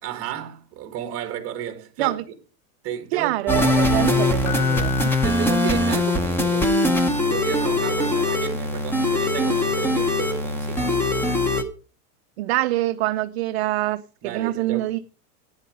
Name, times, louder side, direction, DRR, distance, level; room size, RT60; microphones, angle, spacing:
voice 1, 0.0-2.2 2.8-3.5 5.2-11.2 14.2-14.9, right 10 dB, 30° right, 1.9 m, -33 dB
voice 2, 3.1-5.2 12.4-15.0, right 17 dB, 45° right, 0.5 m, -25 dB
sound 1, 3.5-11.6, left 1 dB, 5° left, 0.6 m, -21 dB
Keyboard (musical), 4.4-6.4 9.7-9.8, left 10 dB, 35° left, 1.2 m, -34 dB
11.0 x 9.3 x 5.2 m
supercardioid pair, 160°, 46 cm